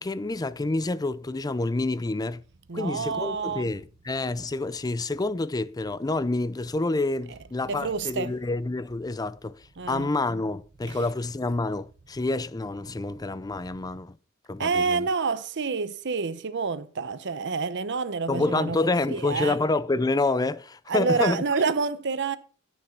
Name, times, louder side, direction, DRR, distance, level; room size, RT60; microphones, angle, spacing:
voice 1, 0.0-2.4 2.7-9.6 9.9-14.2 14.5-15.1 18.3-21.4, left 2 dB, 20° left, 0.5 m, -28 dB
voice 2, 2.7-3.7 7.7-8.4 9.8-10.1 10.9-11.0 14.6-19.6 20.9-22.4, right 4 dB, 60° right, 0.8 m, -28 dB
12.5 x 6.8 x 5.8 m
head